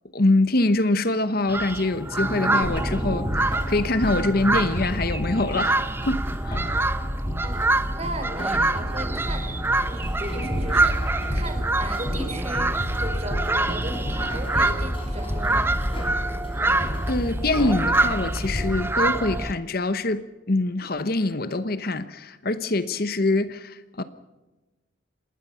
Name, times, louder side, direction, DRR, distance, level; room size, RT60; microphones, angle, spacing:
voice 1, 0.1-6.8 16.6-24.0, left 2 dB, 45° left, 1.0 m, -24 dB
sound 1, 1.5-19.5, right 2 dB, 10° right, 0.8 m, -26 dB
sound 2, 2.6-18.7, equal, 25° left, 5.4 m, -31 dB
voice 2, 7.4-9.5 9.9-15.7, right 1 dB, 30° right, 4.8 m, -36 dB
27.5 x 21.0 x 5.7 m
head